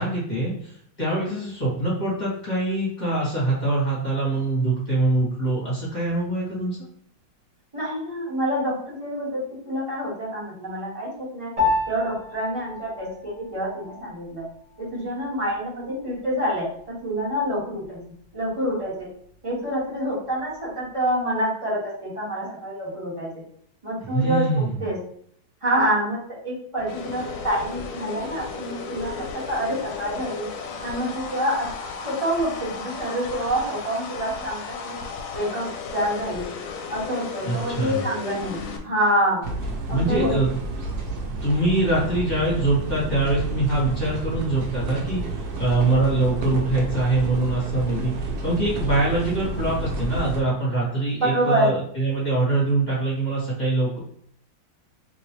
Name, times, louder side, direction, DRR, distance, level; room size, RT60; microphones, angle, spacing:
voice 1, 0.0-6.8 24.1-24.8 37.4-38.0 39.9-40.5 41.4-54.0, right 2 dB, 25° left, -7 dB, 1.5 m, -24 dB
voice 2, 7.7-9.4 9.6-11.5 11.9-14.4 14.8-16.6 17.0-18.0 18.3-19.1 19.4-23.3 23.8-25.0 25.6-30.5 30.8-31.7 32.0-34.9 35.3-35.7 35.9-36.4 36.9-39.4 39.9-40.3 51.2-51.7, equal, 20° right, -7 dB, 1.1 m, -27 dB
Piano, 11.6-21.2, left 3 dB, 40° right, 0.5 m, -33 dB
sound 1, 26.8-38.8, left 5 dB, 75° left, 1.2 m, -35 dB
sound 2, 39.4-50.4, right 2 dB, 70° right, 1.0 m, -30 dB
3.0 x 3.0 x 2.8 m, 0.65 s
omnidirectional pair, 2.1 m